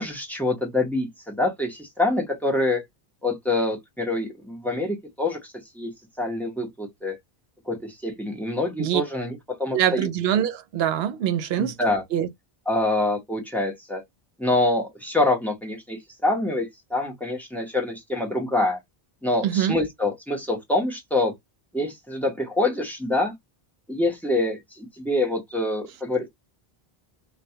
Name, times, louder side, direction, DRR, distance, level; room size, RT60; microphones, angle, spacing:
voice 1, 0.0-2.8 3.2-5.9 6.2-7.2 7.7-10.1 11.6-12.0 12.7-14.0 14.4-18.8 19.2-21.3 21.7-23.3 23.9-26.3, left 2 dB, ahead, 0.7 m, -26 dB
voice 2, 9.7-11.7 12.1-12.3 19.4-19.8, right 10 dB, 80° right, 0.8 m, -24 dB
2.2 x 2.2 x 2.7 m
omnidirectional pair, 1.0 m